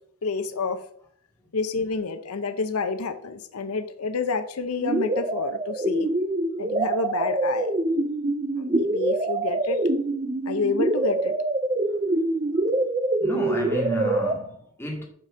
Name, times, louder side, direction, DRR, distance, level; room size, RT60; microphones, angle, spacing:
voice 1, 0.2-0.8 1.5-6.1 6.6-7.7 8.6-9.8 10.4-11.3, left 4 dB, 90° left, 0.7 m, -28 dB
sound 1, 4.8-14.4, right 2 dB, 25° right, 0.5 m, -25 dB
voice 2, 13.2-15.0, right 1 dB, 10° left, 2.0 m, -31 dB
7.7 x 4.2 x 6.2 m
head